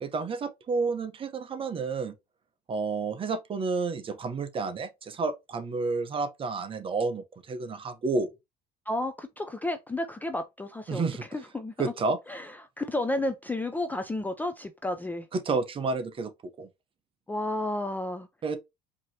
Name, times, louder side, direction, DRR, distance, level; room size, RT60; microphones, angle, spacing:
voice 1, 0.0-2.1 2.7-8.3 10.9-11.2 11.8-12.2 15.3-16.3 16.6-16.7 18.4-18.6, right 4 dB, 30° right, 0.8 m, -30 dB
voice 2, 8.9-11.0 11.3-11.7 12.3-15.3 17.3-18.3, left 1 dB, 10° left, 0.4 m, -32 dB
4.7 x 2.9 x 2.8 m
cardioid pair, 115°, 18 cm